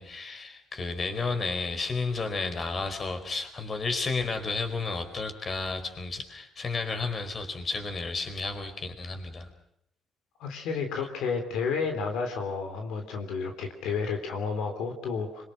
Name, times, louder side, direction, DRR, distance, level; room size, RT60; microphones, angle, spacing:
voice 1, 0.0-9.5, left 3 dB, 40° left, 7 dB, 4.7 m, -32 dB
voice 2, 10.4-15.4, left 5 dB, 85° left, 5 dB, 3.4 m, -31 dB
25.5 x 24.0 x 6.2 m, 0.75 s
cardioid pair, 85°, 0 cm